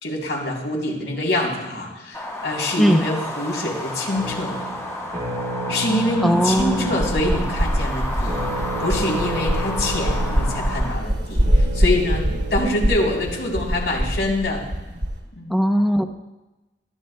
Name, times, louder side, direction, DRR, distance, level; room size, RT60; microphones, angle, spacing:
voice 1, 0.0-4.5 5.7-8.5 8.8-14.6 15.4-15.6, left 1 dB, 70° left, -2 dB, 3.6 m, -25 dB
sound 1, 2.1-10.9, left 1 dB, 20° left, 1.7 m, -31 dB
sound 2, 4.1-14.0, right 2 dB, 45° right, 3.9 m, -32 dB
voice 2, 6.2-6.9 15.5-16.0, equal, ahead, 5 dB, 0.7 m, -19 dB
sound 3, 6.5-15.2, equal, 75° right, 3.5 m, -23 dB
21.5 x 13.5 x 2.3 m, 1.1 s
head